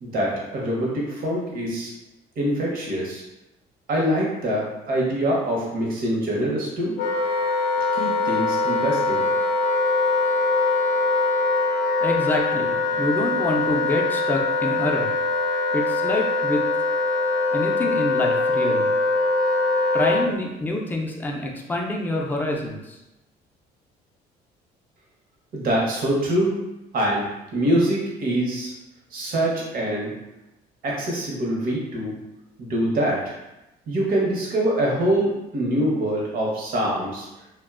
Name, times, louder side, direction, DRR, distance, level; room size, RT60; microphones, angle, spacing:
voice 1, 0.0-1.9 2.4-3.2 3.9-6.9 7.9-9.2 25.5-26.5 26.9-28.7 29.1-30.1 30.8-32.1 32.6-33.3 33.9-37.3, right 1 dB, 60° right, -3 dB, 0.8 m, -24 dB
Wind instrument woodwind instrument, 7.0-20.3, left 3 dB, 80° left, 0.4 m, -22 dB
voice 2, 12.0-15.1 15.7-16.7 17.5-18.9 19.9-23.0, left 2 dB, 10° left, 0 dB, 0.4 m, -26 dB
2.5 x 2.2 x 2.4 m, 0.94 s
cardioid pair, 110°, 17 cm